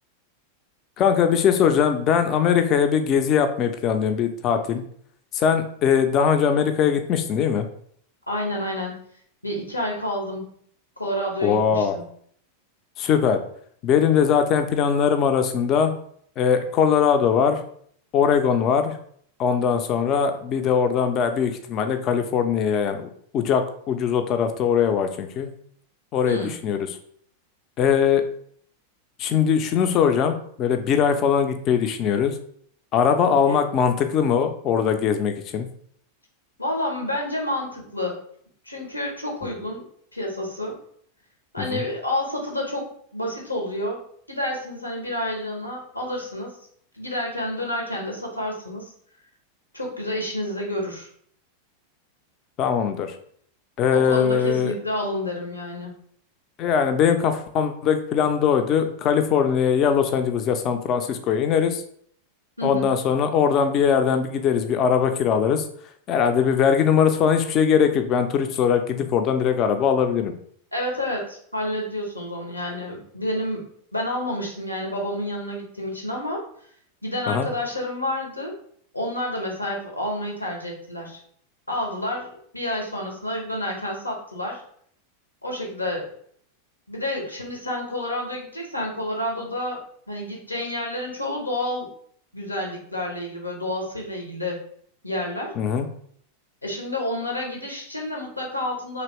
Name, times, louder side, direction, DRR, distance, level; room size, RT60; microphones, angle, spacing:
voice 1, 1.0-4.8 5.3-7.7 11.4-11.9 13.0-13.4 13.8-15.9 16.4-17.6 18.1-19.0 19.4-23.1 23.3-25.5 26.1-27.0 27.8-28.2 29.2-32.3 32.9-35.7 41.6-41.8 52.6-53.1 53.8-54.7 56.6-61.8 62.6-65.6 66.1-70.3 77.3-77.5 95.6-95.9, left 7 dB, 35° left, 7 dB, 0.4 m, -21 dB
voice 2, 8.3-9.0 9.4-10.5 11.0-12.0 26.2-26.6 33.2-33.6 36.6-38.2 38.6-39.8 40.1-40.8 41.5-44.0 44.3-46.6 46.9-48.9 49.7-51.1 53.9-55.9 62.6-62.9 70.7-73.6 73.9-76.4 77.0-78.5 78.9-81.2 81.7-82.3 82.5-84.6 85.4-86.1 86.9-91.9 92.3-94.6 95.0-95.5 96.6-99.0, left 1 dB, 85° left, 0 dB, 0.8 m, -29 dB
3.0 x 2.8 x 3.0 m, 0.62 s
figure-of-eight pair, 90°, 0 cm